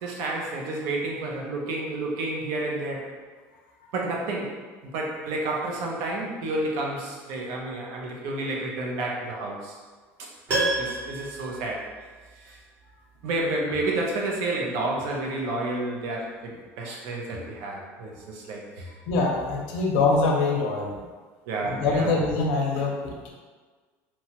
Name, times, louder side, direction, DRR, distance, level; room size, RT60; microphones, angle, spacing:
voice 1, 0.0-3.0 3.9-4.5 4.9-9.8 10.2-10.3 10.8-11.9 12.4-12.6 13.2-18.9 21.5-22.2, right 2 dB, 55° right, -1 dB, 0.5 m, -30 dB
Piano, 10.5-12.6 12.9-13.0, right 2 dB, 30° right, 0.9 m, -30 dB
voice 2, 19.1-20.9 21.6-23.3, left 3 dB, 80° left, 0 dB, 0.6 m, -24 dB
2.8 x 2.2 x 2.9 m, 1.4 s
cardioid pair, 180°, 6 cm